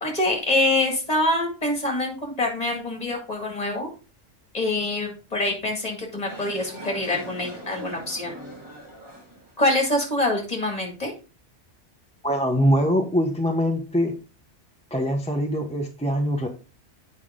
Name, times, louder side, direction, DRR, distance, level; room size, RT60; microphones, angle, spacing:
voice 1, 0.0-3.9 4.5-8.3 9.6-11.1, left 1 dB, 30° left, 1 dB, 2.3 m, -25 dB
sound 1, 6.3-9.5, right 1 dB, 25° right, 4.3 m, -40 dB
voice 2, 12.2-14.1 14.9-16.5, equal, 5° left, 2 dB, 0.8 m, -23 dB
8.3 x 5.4 x 3.7 m, 0.34 s
omnidirectional pair, 1.2 m